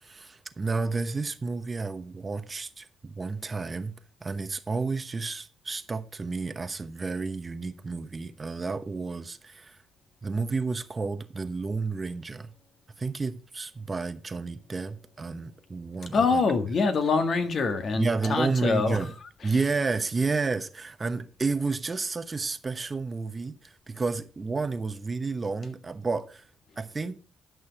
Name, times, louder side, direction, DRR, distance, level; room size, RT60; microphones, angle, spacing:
voice 1, 0.0-3.9 4.2-9.8 10.2-12.5 13.0-16.4 17.9-19.1 19.4-26.5 26.8-27.2, right 4 dB, 30° right, 0.9 m, -31 dB
voice 2, 16.1-19.6, left 4 dB, 50° left, 1.7 m, -25 dB
11.5 x 6.3 x 4.7 m
cardioid pair, 90°, 0 cm